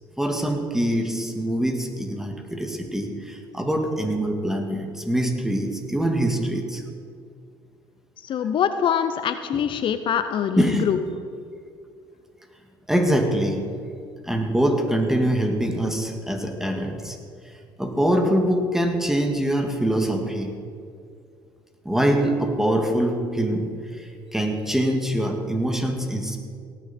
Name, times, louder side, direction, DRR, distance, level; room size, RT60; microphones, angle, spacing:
voice 1, 0.2-6.8 9.5-9.6 10.6-10.9 12.9-13.6 14.2-17.2 17.8-20.5 21.9-26.4, right 1 dB, 5° right, 3 dB, 2.0 m, -24 dB
voice 2, 8.3-11.0, left 8 dB, 55° left, 10 dB, 0.6 m, -24 dB
18.0 x 9.1 x 4.3 m, 2.3 s
supercardioid pair, 75°, 10 cm